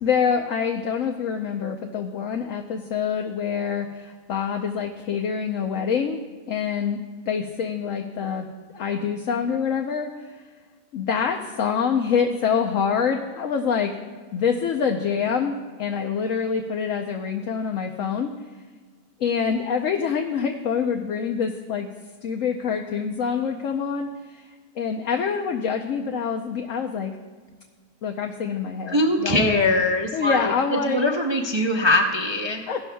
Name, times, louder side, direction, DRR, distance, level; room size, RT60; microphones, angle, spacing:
voice 1, 0.0-7.0 7.3-10.1 10.9-13.9 14.3-15.5 15.8-18.3 19.2-21.9 22.2-24.5 24.8-27.1 28.0-29.6 30.1-31.0 32.7-32.8, left 6 dB, 60° left, 3 dB, 1.0 m, -26 dB
voice 2, 28.9-32.6, left 1 dB, 30° right, 1 dB, 0.5 m, -22 dB
17.5 x 12.5 x 2.3 m, 1.5 s
omnidirectional pair, 1.7 m